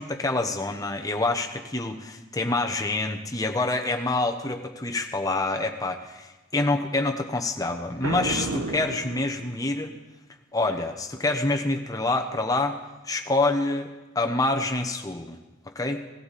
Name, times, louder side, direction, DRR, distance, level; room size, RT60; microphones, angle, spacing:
voice 1, 0.0-9.9 10.5-12.8 13.0-15.4 15.7-16.0, left 2 dB, 15° left, 4 dB, 1.0 m, -27 dB
Boom, 8.0-9.9, right 2 dB, 90° right, 1.0 m, -32 dB
18.0 x 15.0 x 4.2 m, 1.1 s
head